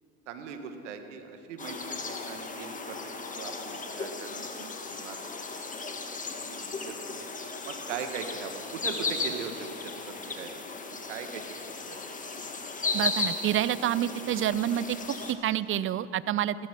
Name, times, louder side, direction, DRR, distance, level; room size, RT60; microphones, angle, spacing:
voice 1, 0.3-5.3 6.4-7.2 7.6-9.5 9.8-10.5 10.9-11.4 11.8-12.0, right 7 dB, 80° right, 7 dB, 1.6 m, -40 dB
sound 1, 1.6-15.3, left 4 dB, 20° left, 1.7 m, -36 dB
voice 2, 12.9-15.0 15.3-16.6, right 11 dB, 35° right, 17 dB, 0.6 m, -28 dB
16.0 x 13.0 x 6.1 m, 2.5 s
hypercardioid pair, 80°, 35 cm